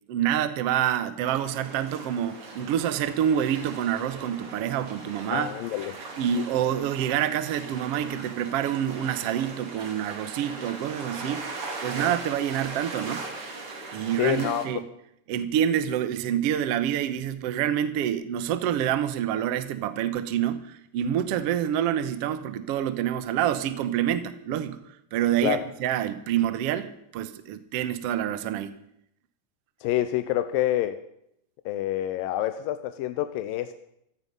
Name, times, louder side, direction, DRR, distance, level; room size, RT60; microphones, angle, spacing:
voice 1, 0.1-5.5 6.2-11.5 11.8-13.3 13.9-14.8 15.3-24.8 25.1-28.8, right 10 dB, 70° right, 12 dB, 1.5 m, -27 dB
sound 1, 1.4-14.6, right 3 dB, 40° right, 3.1 m, -39 dB
voice 2, 5.3-6.0 14.2-14.6 25.4-25.6 29.8-31.0 31.7-33.7, left 13 dB, 85° left, 9 dB, 2.5 m, -27 dB
17.0 x 14.0 x 5.4 m, 0.75 s
omnidirectional pair, 4.0 m